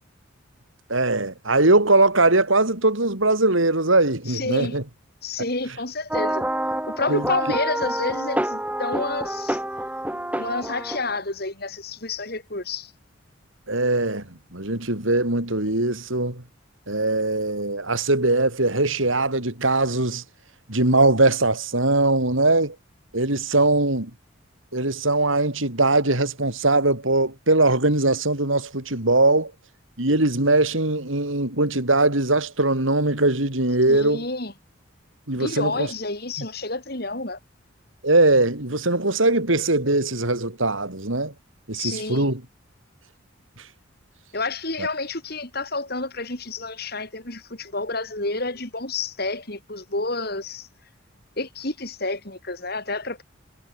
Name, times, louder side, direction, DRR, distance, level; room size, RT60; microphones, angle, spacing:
voice 1, 0.9-4.8 7.1-7.3 13.7-16.4 16.9-20.2 20.7-22.7 23.1-24.1 24.7-29.5 30.0-34.3 35.3-35.9 38.0-41.3 41.7-42.4 44.8-44.9, right 2 dB, 75° right, 4.5 m, -21 dB
voice 2, 4.3-4.8 5.2-6.4 6.9-9.6 10.4-12.9 33.9-34.5 35.4-37.4 41.7-42.3 44.3-50.7 51.4-53.2, left 3 dB, 50° left, 4.9 m, -29 dB
sound 1, 6.1-11.2, right 1 dB, 5° right, 5.0 m, -27 dB
head